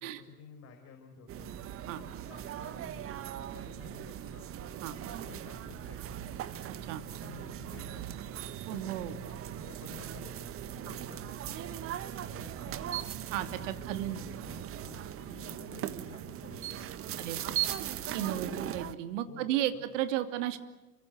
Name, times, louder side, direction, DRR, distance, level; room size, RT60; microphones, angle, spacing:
voice 1, 0.0-1.5 1.9-4.5 5.1-6.2 7.2-8.2 8.7-13.0 13.7-17.8 19.3-19.8, left 6 dB, 35° left, 3 dB, 5.2 m, -53 dB
sound 1, 1.3-18.9, right 11 dB, 30° right, 1.7 m, -39 dB
voice 2, 8.7-9.1 10.9-11.0 13.3-14.2 17.2-17.5 18.1-20.6, right 12 dB, 55° right, 8 dB, 2.9 m, -34 dB
28.5 x 24.5 x 8.2 m, 1.1 s
figure-of-eight pair, 95°, 44 cm